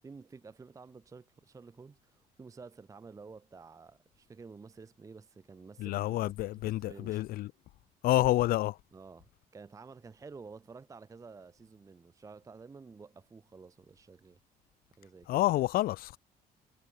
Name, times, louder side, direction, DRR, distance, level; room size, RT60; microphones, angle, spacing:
voice 1, 0.0-7.2 8.9-14.4 15.0-15.4, right 4 dB, 20° right, 0.6 m, -51 dB
voice 2, 5.8-7.5 8.0-8.8 15.3-16.2, left 16 dB, 60° left, 0.4 m, -28 dB
cardioid pair, 110°, 17 cm